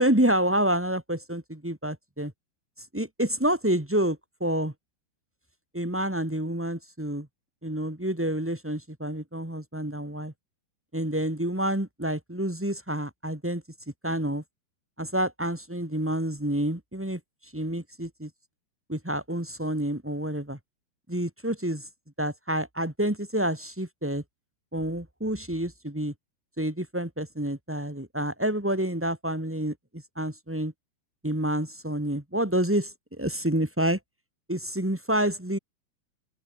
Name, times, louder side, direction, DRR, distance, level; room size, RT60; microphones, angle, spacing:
voice 1, 0.0-2.3 2.9-4.7 5.7-7.3 7.6-10.3 10.9-13.6 14.0-14.4 15.0-17.2 17.5-18.3 18.9-20.6 21.1-21.9 22.2-24.2 24.7-26.1 26.6-30.7 31.2-34.0 34.5-35.6, right 1 dB, 15° right, 0.5 m, -28 dB
open air
omnidirectional pair, 4.7 m